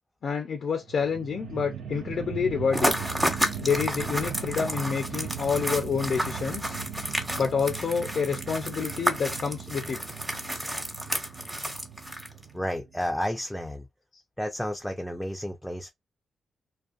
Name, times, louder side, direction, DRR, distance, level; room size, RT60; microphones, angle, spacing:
voice 1, 0.2-3.0 3.6-6.8 7.4-10.2, left 6 dB, 65° left, 0.4 m, -28 dB
sound 1, 0.8-13.2, right 7 dB, 80° right, 0.4 m, -39 dB
sound 2, 2.7-12.5, equal, 10° right, 1.0 m, -31 dB
voice 2, 12.5-13.9 14.4-15.9, equal, 5° left, 0.5 m, -31 dB
2.4 x 2.2 x 2.4 m
supercardioid pair, 45°, 0 cm